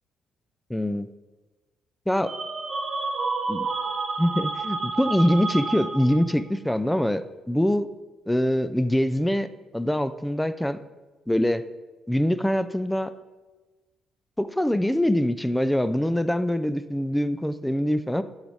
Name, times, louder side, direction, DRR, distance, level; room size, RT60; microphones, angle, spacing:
voice 1, 0.7-1.1 2.1-2.3 3.5-3.7 4.2-7.9 8.3-9.5 9.7-10.8 11.3-11.6 12.1-13.1 14.4-18.2, equal, 5° left, 12 dB, 0.4 m, -24 dB
sound 1, 2.2-6.4, right 3 dB, 50° right, 1.2 m, -30 dB
10.0 x 4.1 x 4.9 m, 1.2 s
cardioid pair, 90°, 0 cm